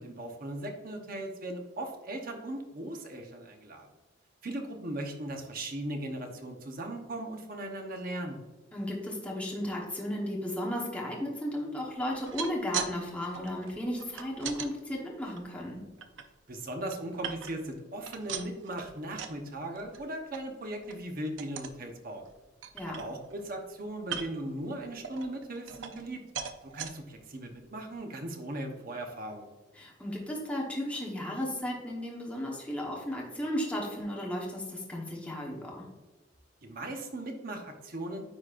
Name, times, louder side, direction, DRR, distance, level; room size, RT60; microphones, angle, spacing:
voice 1, 0.0-3.9 4.4-8.4 16.5-22.3 22.8-26.2 26.6-29.5 36.6-38.2, right 1 dB, 50° right, 3 dB, 0.9 m, -38 dB
voice 2, 8.7-15.8 22.7-23.0 29.8-35.8, left 1 dB, 5° left, -3 dB, 1.1 m, -34 dB
sound 1, 12.1-12.9 13.2-14.7 15.2-16.2 16.7-17.7 18.0-19.4 19.7-20.0 20.3-20.4 20.8-21.0 21.4-21.8 22.2-22.3 22.6-23.4 24.0-24.5 25.0-26.1 26.3-26.9 27.5-27.6 27.9-28.0, right 7 dB, 85° right, 0.6 m, -39 dB
9.7 x 4.1 x 2.5 m, 1.2 s
head